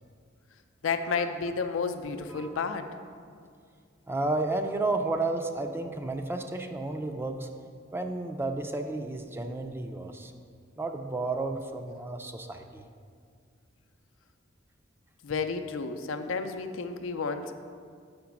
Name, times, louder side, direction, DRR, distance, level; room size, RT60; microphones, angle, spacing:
voice 1, 0.8-2.9 15.2-17.5, left 5 dB, 90° left, 8 dB, 0.5 m, -31 dB
voice 2, 4.1-7.5 7.9-10.3 10.8-12.9, right 2 dB, 10° right, 5 dB, 0.4 m, -32 dB
6.0 x 5.2 x 5.8 m, 2.2 s
head